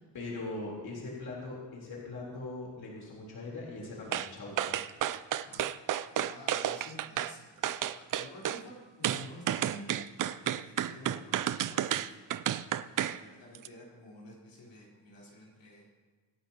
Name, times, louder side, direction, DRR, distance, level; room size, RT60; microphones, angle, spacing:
voice 1, 0.0-4.8, left 2 dB, 55° left, -4 dB, 3.8 m, -41 dB
voice 2, 0.6-1.0 5.4-5.8 6.2-9.9 10.4-12.8 13.1-15.9, left 1 dB, 75° left, -5 dB, 4.1 m, -51 dB
sound 1, 4.1-4.3 4.6-7.3 7.6-8.6 9.0-13.2 13.5-13.7, right 11 dB, 45° right, 0.5 m, -31 dB
25.5 x 10.5 x 2.9 m, 1.3 s
cardioid pair, 145°, 44 cm